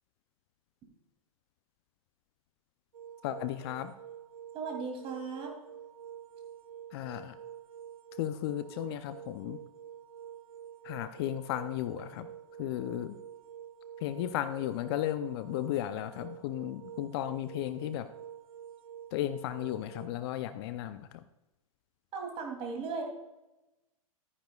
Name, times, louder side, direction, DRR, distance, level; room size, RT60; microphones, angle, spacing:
sound 1, 2.9-20.1, right 9 dB, 70° right, 0.7 m, -48 dB
voice 1, 3.2-3.9 6.9-7.3 8.2-9.6 10.8-12.3 12.6-13.1 14.0-18.1 19.1-21.1, left 13 dB, 45° left, 12 dB, 0.6 m, -34 dB
voice 2, 4.5-5.5 22.1-23.0, right 4 dB, 30° right, 2 dB, 2.8 m, -37 dB
13.0 x 9.7 x 2.3 m, 1.0 s
hypercardioid pair, 110°, 18 cm